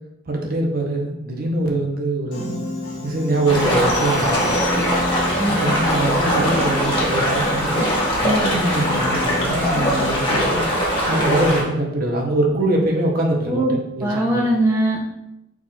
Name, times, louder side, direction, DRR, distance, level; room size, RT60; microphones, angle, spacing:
voice 1, 0.3-2.5 3.0-4.5 5.5-7.8 8.2-10.6 11.1-13.7 13.9-14.4, right 2 dB, 50° right, 0 dB, 0.8 m, -23 dB
Piano, 2.3-10.3, equal, 70° left, 1.4 m, -30 dB
sound 1, 3.5-11.6, equal, 25° left, 1.1 m, -21 dB
sound 2, 3.9-5.4, left 8 dB, 55° left, 0.8 m, -37 dB
voice 2, 14.0-15.0, right 1 dB, 15° right, -3 dB, 0.5 m, -20 dB
4.8 x 2.4 x 4.2 m, 0.88 s
head